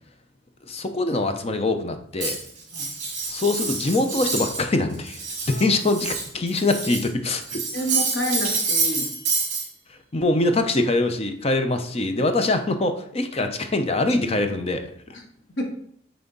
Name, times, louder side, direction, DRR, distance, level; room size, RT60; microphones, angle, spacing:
voice 1, 0.7-2.4 3.3-7.6 10.1-14.9, left 2 dB, 30° left, 7 dB, 0.6 m, -23 dB
Cutlery silverware, 2.2-4.7 4.9-7.1 7.4-9.6, right 4 dB, 40° right, 2.9 m, -27 dB
voice 2, 7.7-9.1 15.1-15.2 15.6-15.7, equal, 65° left, 2 dB, 1.4 m, -29 dB
8.9 x 3.5 x 3.9 m, 0.66 s
head